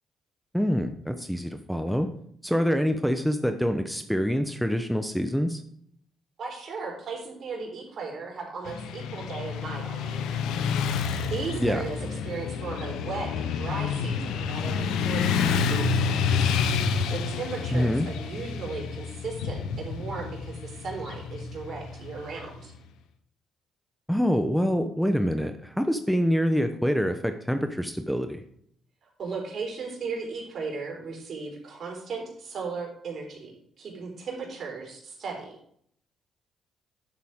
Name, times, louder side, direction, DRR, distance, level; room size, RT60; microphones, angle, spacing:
voice 1, 0.5-2.1 2.4-5.6 11.6-11.8 17.7-18.1 24.1-28.4, equal, ahead, 7 dB, 1.0 m, -26 dB
voice 2, 6.4-10.4 11.3-12.0 12.2-16.5 17.1-22.7 29.0-35.5, right 4 dB, 60° right, 0 dB, 3.9 m, -36 dB
Motorcycle / Traffic noise roadway noise, 8.6-22.8, left 6 dB, 80° left, 0.8 m, -29 dB
10.5 x 7.4 x 3.7 m, 0.67 s
supercardioid pair, 60°, 0 cm